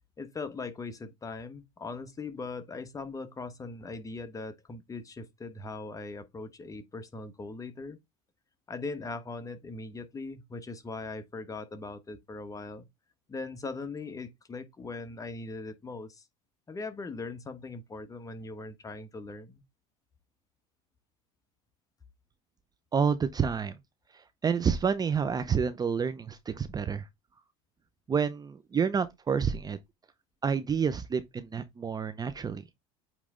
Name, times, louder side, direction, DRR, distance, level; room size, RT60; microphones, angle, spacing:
voice 1, 0.2-8.0 8.7-12.8 13.3-16.2 16.7-19.6, left 3 dB, 20° left, 1.1 m, -40 dB
voice 2, 22.9-23.7 24.4-27.0 28.1-29.8 30.4-32.6, right 6 dB, 25° right, 0.6 m, -29 dB
8.5 x 3.2 x 3.7 m
supercardioid pair, 105°, 16 cm